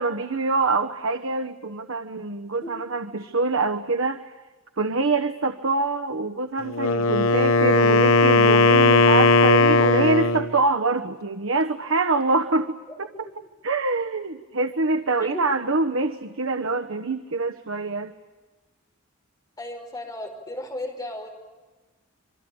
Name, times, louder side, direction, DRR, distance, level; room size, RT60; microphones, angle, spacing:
voice 1, 0.0-4.3 4.8-13.1 13.6-18.1, right 3 dB, 75° right, 7 dB, 1.1 m, -25 dB
Wind instrument woodwind instrument, 6.6-10.5, left 3 dB, 80° left, 0.8 m, -17 dB
voice 2, 19.6-21.3, left 1 dB, 20° left, 2 dB, 5.4 m, -35 dB
27.5 x 24.0 x 8.8 m, 1.3 s
head